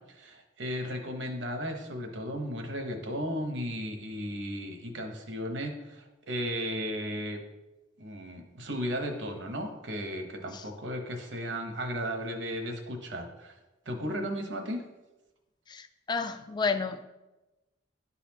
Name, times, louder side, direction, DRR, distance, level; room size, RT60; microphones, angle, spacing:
voice 1, 0.1-7.4 8.0-13.5 13.9-14.8, equal, 65° right, 4 dB, 1.0 m, -35 dB
voice 2, 15.7-17.0, left 4 dB, 25° left, 8 dB, 0.3 m, -31 dB
11.0 x 4.1 x 2.9 m, 1.1 s
head